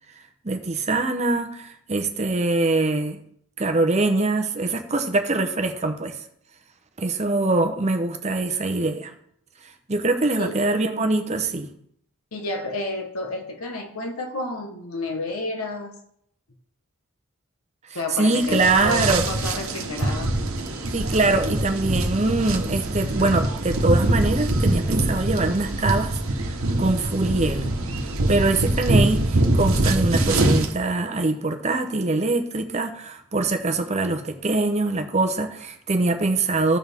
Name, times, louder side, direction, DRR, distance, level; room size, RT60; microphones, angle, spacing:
voice 1, 0.4-3.2 3.6-6.2 7.0-9.1 9.9-11.7 18.2-19.2 20.9-26.2 26.5-27.7 28.3-36.8, right 2 dB, 30° right, 6 dB, 0.7 m, -23 dB
voice 2, 12.3-15.9 17.9-20.4, left 2 dB, 75° left, 4 dB, 1.1 m, -30 dB
sound 1, 18.3-30.7, right 1 dB, 70° right, 1.2 m, -23 dB
14.5 x 6.3 x 3.5 m, 0.70 s
head